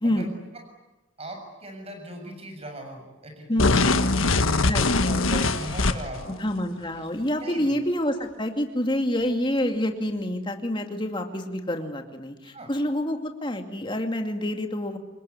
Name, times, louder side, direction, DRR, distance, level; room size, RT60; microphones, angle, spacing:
voice 1, 1.2-4.3 5.0-6.4 7.0-7.1 7.4-7.8 12.4-12.7, right 1 dB, 30° right, 4 dB, 7.1 m, -39 dB
sound 1, 3.6-6.2, left 3 dB, 85° left, 1.5 m, -22 dB
voice 2, 6.4-15.0, left 1 dB, 25° left, 5 dB, 2.4 m, -27 dB
26.5 x 21.5 x 9.7 m, 1.1 s
head